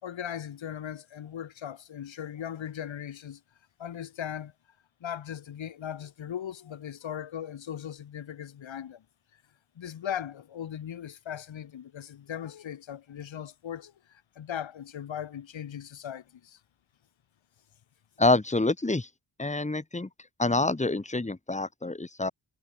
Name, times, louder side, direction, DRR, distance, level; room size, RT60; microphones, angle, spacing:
voice 1, 0.0-3.4 3.8-4.5 5.0-9.0 9.7-16.6, left 9 dB, 85° left, 2.7 m, -38 dB
voice 2, 18.2-19.1 19.4-20.1 20.4-22.3, left 2 dB, 15° left, 2.5 m, -26 dB
cardioid pair, 90°, 45 cm